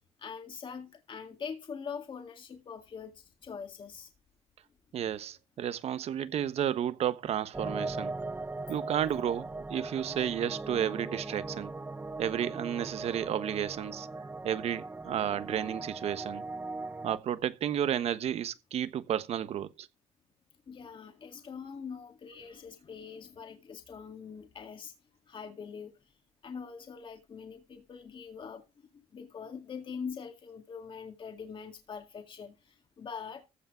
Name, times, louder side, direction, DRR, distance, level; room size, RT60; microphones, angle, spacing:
voice 1, 0.2-4.1 20.7-24.9 25.3-26.1 26.4-33.5, left 6 dB, 45° left, 2.0 m, -43 dB
voice 2, 4.9-8.1 8.7-11.7 12.2-14.1 14.4-16.4 17.0-19.7, right 10 dB, 65° right, 1.2 m, -32 dB
sound 1, 7.5-17.2, right 3 dB, 15° right, 0.8 m, -39 dB
15.0 x 5.8 x 5.8 m
cardioid pair, 85°, 12 cm